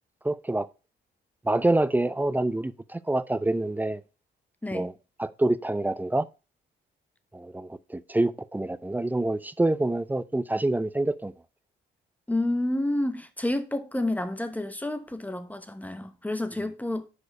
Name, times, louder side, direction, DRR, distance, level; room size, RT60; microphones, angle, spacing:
voice 1, 0.2-0.7 1.4-4.0 4.7-4.9 5.2-6.3 7.3-11.3, right 2 dB, 10° right, 0.5 m, -26 dB
voice 2, 12.3-17.1, left 1 dB, 10° left, 0.9 m, -29 dB
6.5 x 4.9 x 4.8 m
cardioid pair, 90°, 20 cm